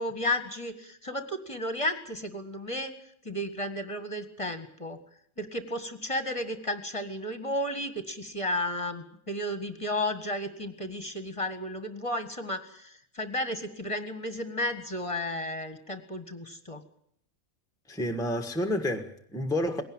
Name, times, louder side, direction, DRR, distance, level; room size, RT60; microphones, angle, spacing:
voice 1, 0.0-2.9 3.3-5.0 5.4-16.8, left 1 dB, 20° left, 1.9 m, -33 dB
voice 2, 17.9-19.8, left 1 dB, 5° left, 1.5 m, -29 dB
20.5 x 17.5 x 8.9 m
omnidirectional pair, 1.5 m